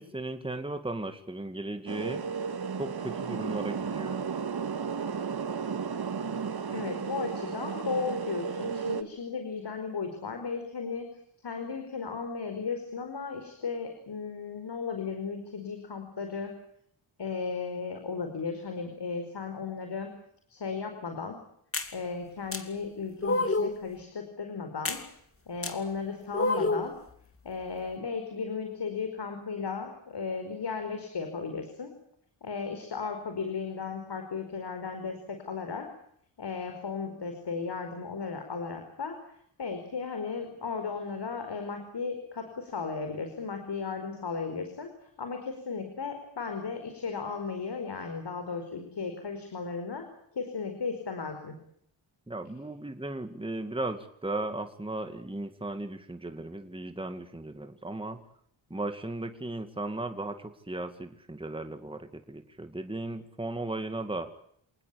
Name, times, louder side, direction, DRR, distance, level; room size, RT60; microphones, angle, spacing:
voice 1, 0.0-2.2 2.8-4.2 52.3-58.2 58.7-64.3, right 2 dB, 10° right, 7 dB, 2.3 m, -36 dB
sound 1, 1.9-9.0, right 6 dB, 50° right, 2.0 m, -33 dB
voice 2, 6.7-11.1 11.4-16.5 17.2-20.1 20.5-21.4 21.9-25.0 25.5-26.9 27.4-31.9 32.4-35.9 36.4-39.2 39.6-44.9 45.2-50.0 50.3-51.6, left 5 dB, 55° left, 6 dB, 5.0 m, -35 dB
sound 2, 21.7-21.9 22.5-22.6 23.2-23.8 24.9-25.0 25.6-25.7 26.3-26.9, left 2 dB, 25° left, 2.8 m, -27 dB
27.5 x 19.5 x 8.8 m, 0.68 s
wide cardioid pair, 105°, 47 cm